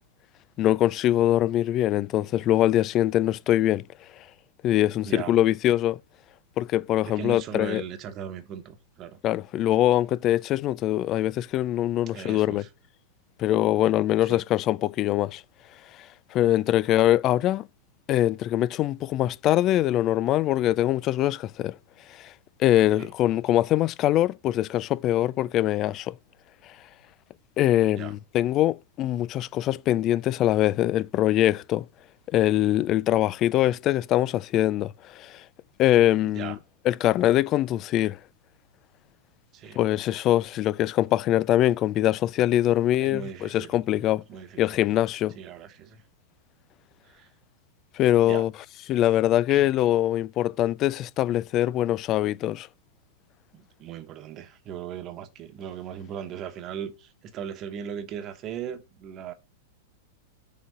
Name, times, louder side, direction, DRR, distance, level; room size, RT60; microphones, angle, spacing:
voice 1, 0.6-3.9 4.6-6.0 6.6-7.8 9.2-12.6 13.4-15.4 16.0-17.7 18.1-21.8 22.1-22.3 22.6-26.1 27.6-31.9 32.3-35.4 35.8-36.6 36.8-38.2 39.8-44.2 44.6-45.3 47.9-48.5 48.9-52.7, left 13 dB, 40° left, 0.3 m, -23 dB
voice 2, 7.0-9.2 12.1-12.7 14.2-14.4 23.0-23.1 27.9-28.1 36.2-36.6 39.5-39.8 43.0-43.8 44.3-44.6 45.4-46.0 47.0-47.3 48.2-48.4 49.5-49.7 53.5-59.3, right 8 dB, 40° right, 1.1 m, -38 dB
6.3 x 4.0 x 5.6 m
hypercardioid pair, 105°, 0 cm